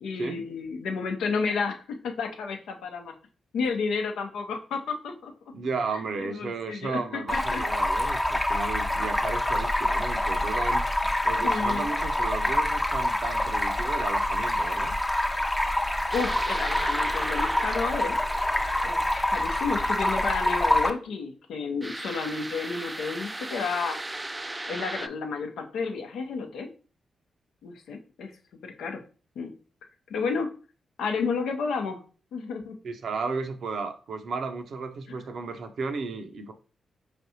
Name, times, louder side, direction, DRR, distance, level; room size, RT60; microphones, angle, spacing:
voice 1, 0.0-3.1 3.5-5.3 6.2-7.6 11.4-11.9 16.1-18.2 18.8-24.0 24.7-26.7 27.6-28.3 28.6-29.0 29.4-29.5 30.1-30.5 31.0-32.0 32.3-32.8 35.1-35.2, left 5 dB, 75° left, 4 dB, 0.6 m, -31 dB
voice 2, 5.5-10.8 11.2-14.9 32.8-36.5, right 4 dB, 70° right, 7 dB, 0.6 m, -34 dB
Stream, 7.3-20.9, left 1 dB, 15° left, 0.6 m, -26 dB
sound 1, 16.1-19.5 21.8-25.1, right 2 dB, 20° right, 0.3 m, -37 dB
4.4 x 3.3 x 2.7 m, 0.37 s
hypercardioid pair, 40°, 0 cm